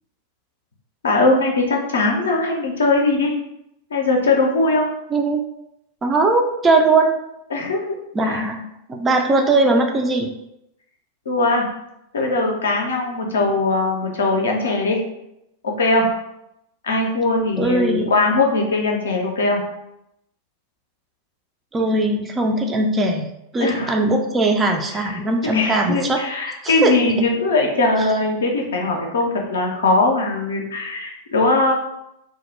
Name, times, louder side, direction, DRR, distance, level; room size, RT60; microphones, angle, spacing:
voice 1, 1.0-3.3 3.9-4.9 7.5-8.0 11.3-11.7 12.1-15.0 15.6-16.1 16.8-19.6 23.6-23.9 25.4-31.7, left 2 dB, 65° left, 1 dB, 0.5 m, -20 dB
voice 2, 5.1-5.4 6.0-7.2 8.1-8.6 8.9-10.3 17.6-18.1 21.7-26.2 26.6-26.9 28.0-28.1, right 2 dB, 20° right, 3 dB, 0.3 m, -19 dB
2.2 x 2.0 x 2.9 m, 0.82 s
figure-of-eight pair, 90°, 0 cm